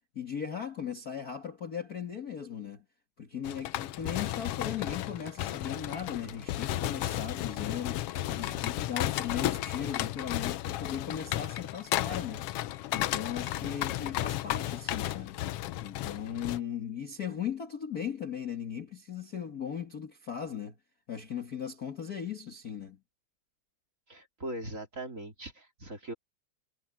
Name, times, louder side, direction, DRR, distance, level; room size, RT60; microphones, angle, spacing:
voice 1, 0.2-2.8 3.2-12.5 12.9-15.4 15.8-20.8 21.1-23.0, left 8 dB, 35° left, 1.8 m, -38 dB
sound 1, 3.4-16.6, left 14 dB, 80° left, 1.4 m, -34 dB
voice 2, 24.1-26.1, right 1 dB, 25° right, 3.2 m, -40 dB
omnidirectional pair, 3.3 m